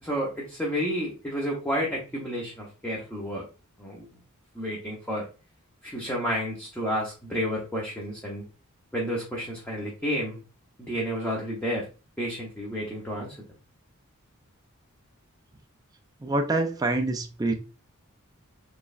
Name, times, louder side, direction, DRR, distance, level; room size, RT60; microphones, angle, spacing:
voice 1, 0.0-3.4 3.8-4.0 4.5-5.3 5.8-8.4 8.9-10.4 10.8-11.9 12.2-13.3, equal, 10° left, 0.9 m, -30 dB
voice 2, 16.2-17.5, right 2 dB, 15° right, 0.4 m, -26 dB
4.7 x 3.2 x 2.4 m
head